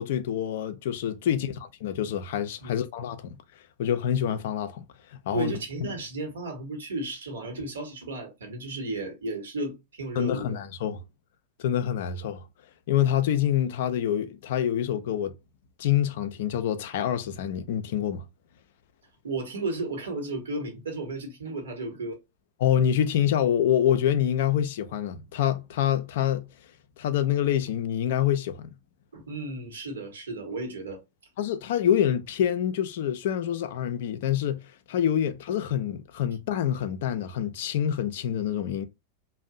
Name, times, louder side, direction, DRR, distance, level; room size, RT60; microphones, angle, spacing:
voice 1, 0.0-3.4 3.8-4.8 5.3-5.5 10.2-11.0 11.6-12.4 12.9-15.3 15.8-18.2 22.6-26.4 27.0-28.7 31.4-34.6 34.9-38.9, left 10 dB, 55° left, 0.3 m, -26 dB
voice 2, 5.3-10.6 19.2-22.1 29.1-31.0 35.2-35.3, right 2 dB, 65° right, 0.9 m, -34 dB
2.5 x 2.0 x 2.4 m
figure-of-eight pair, 90°, 0 cm